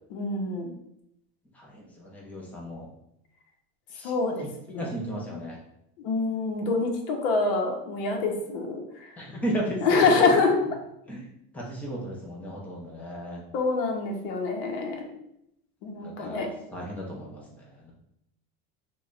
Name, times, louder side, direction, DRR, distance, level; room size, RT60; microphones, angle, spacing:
voice 1, 0.1-0.7 4.0-4.5 4.7-5.4 6.0-9.1 9.8-10.6 13.5-15.1 15.8-16.5, left 3 dB, 65° left, 2 dB, 0.8 m, -26 dB
voice 2, 1.5-2.9 3.9-4.1 4.7-5.6 9.2-10.0 11.1-11.3 11.5-13.4 16.0-16.4 16.7-17.9, right 1 dB, 5° left, -3 dB, 0.5 m, -35 dB
3.0 x 2.2 x 3.7 m, 0.78 s
cardioid pair, 155°, 30 cm